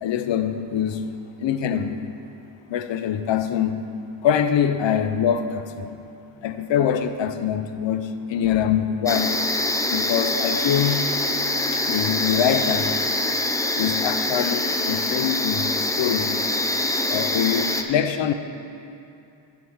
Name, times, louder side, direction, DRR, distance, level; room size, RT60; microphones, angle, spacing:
voice 1, 0.0-1.0 1.4-2.1 2.7-3.8 4.2-6.0 6.4-9.3 9.9-11.1 11.7-13.0 13.7-16.4 17.1-18.3, left 9 dB, 70° left, 9 dB, 0.7 m, -24 dB
sound 1, 9.1-17.8, left 2 dB, 5° left, 0.6 m, -24 dB
8.1 x 6.0 x 7.8 m, 2.7 s
cardioid pair, 90°, 46 cm